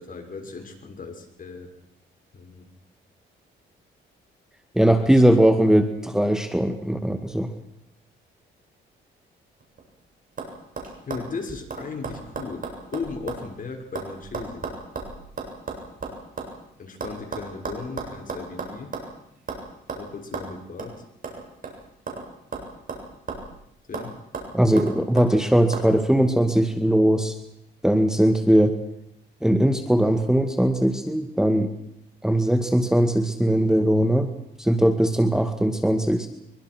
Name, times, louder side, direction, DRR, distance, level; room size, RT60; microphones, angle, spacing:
voice 1, 0.0-1.7 2.3-2.7 4.9-5.2 11.1-14.8 16.8-18.9 20.0-21.0 23.9-24.1, left 4 dB, 45° left, 4 dB, 6.0 m, -36 dB
voice 2, 4.8-7.5 24.5-27.4 27.8-28.8 29.4-31.7 32.2-34.3 34.6-36.3, right 1 dB, 5° right, 7 dB, 2.1 m, -20 dB
sound 1, 9.6-10.0 10.4-10.5 10.8-13.5 13.7-16.5 17.0-19.1 19.5-19.6 19.9-20.0 20.3-20.5 20.8-20.9 21.2-22.3 22.5-23.6 23.9-24.1 24.3-25.3 25.7-25.9, right 4 dB, 45° right, 7.7 m, -34 dB
24.0 x 23.5 x 6.3 m, 0.79 s
cardioid pair, 90°, 20 cm